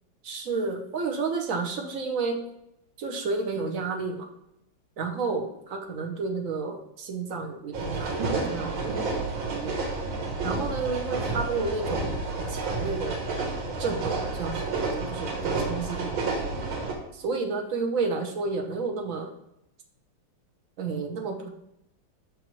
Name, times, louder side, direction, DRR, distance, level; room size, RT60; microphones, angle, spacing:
voice 1, 0.2-2.4 3.0-4.3 5.0-9.0 9.4-9.8 10.4-12.1 12.4-13.2 13.8-16.2 17.1-19.3 20.8-21.5, right 4 dB, 60° right, 3 dB, 0.9 m, -31 dB
sound 1, 7.7-16.9, right 3 dB, 85° right, 1.9 m, -30 dB
6.1 x 5.2 x 3.0 m, 0.81 s
omnidirectional pair, 2.1 m